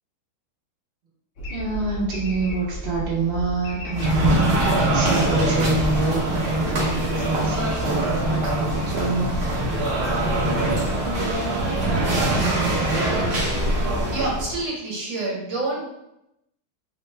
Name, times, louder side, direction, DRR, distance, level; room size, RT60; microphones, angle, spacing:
sound 1, 1.4-6.8, right 1 dB, 85° left, 0.6 m, -34 dB
voice 1, 1.5-4.3 4.6-9.3, right 3 dB, 45° right, -6 dB, 0.9 m, -26 dB
sound 2, 3.9-14.6, right 1 dB, 90° right, 0.5 m, -23 dB
voice 2, 14.1-15.8, right 2 dB, 70° right, -3 dB, 1.5 m, -27 dB
3.6 x 2.1 x 3.2 m, 0.84 s
omnidirectional pair, 2.3 m